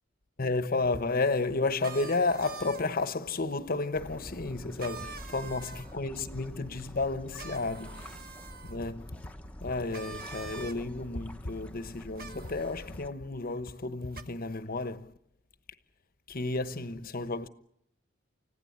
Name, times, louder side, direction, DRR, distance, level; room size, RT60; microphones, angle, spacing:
voice 1, 0.4-8.3 8.6-9.2 9.6-15.1 16.3-17.5, left 3 dB, 45° left, 1.1 m, -32 dB
sound 1, 1.8-3.1 4.8-6.0 7.4-8.8 9.9-10.8 12.2-12.9 14.1-14.2, right 5 dB, 50° right, 1.3 m, -45 dB
sound 2, 3.9-13.1, left 1 dB, 5° left, 1.0 m, -47 dB
29.5 x 16.5 x 8.7 m
head